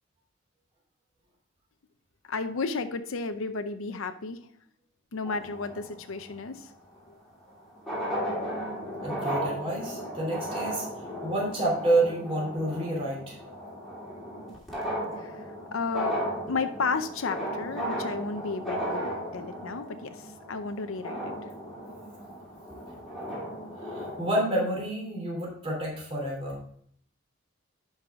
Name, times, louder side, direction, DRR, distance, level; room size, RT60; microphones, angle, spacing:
voice 1, 2.3-4.4 5.1-6.7 7.1-7.2 15.2-16.2 16.5-21.3, left 4 dB, 80° left, 8 dB, 0.6 m, -33 dB
sound 1, 5.2-6.3 7.5-7.6 7.8-24.3, equal, ahead, 2.8 m, -35 dB
voice 2, 9.0-13.4 23.9-26.6, right 1 dB, 30° right, -2 dB, 3.1 m, -29 dB
10.5 x 5.6 x 3.6 m, 0.64 s
head